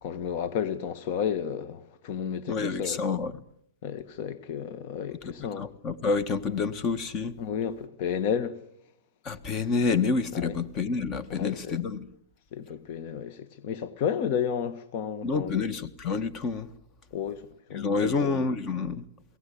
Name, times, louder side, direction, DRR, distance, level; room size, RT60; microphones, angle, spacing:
voice 1, 0.0-3.0 3.8-5.7 7.4-8.6 10.3-10.5 11.3-11.8 12.5-15.6 17.1-18.3, left 8 dB, 50° left, 1.6 m, -32 dB
voice 2, 2.5-3.3 5.2-7.3 9.3-12.1 15.2-16.7 17.7-19.0, left 4 dB, 30° left, 1.6 m, -28 dB
22.0 x 18.0 x 8.6 m
hypercardioid pair, 125°, 0 cm